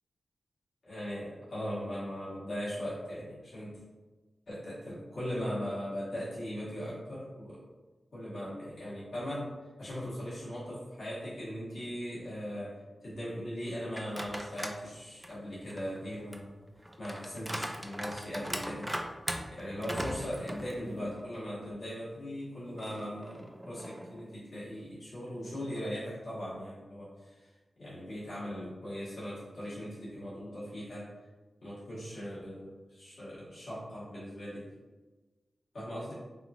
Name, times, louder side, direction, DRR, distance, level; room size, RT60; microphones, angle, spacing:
voice 1, 0.8-3.8 4.5-7.6 8.1-9.5 9.8-16.6 17.0-18.9 19.5-27.5 27.8-31.1 31.6-34.7 35.7-36.1, equal, 75° left, -10 dB, 1.4 m, -39 dB
sound 1, 13.9-14.8 15.2-21.3 21.7-21.8 22.8-24.3, equal, 10° right, 0.3 m, -40 dB
3.0 x 2.4 x 2.5 m, 1.2 s
cardioid pair, 50°, 0 cm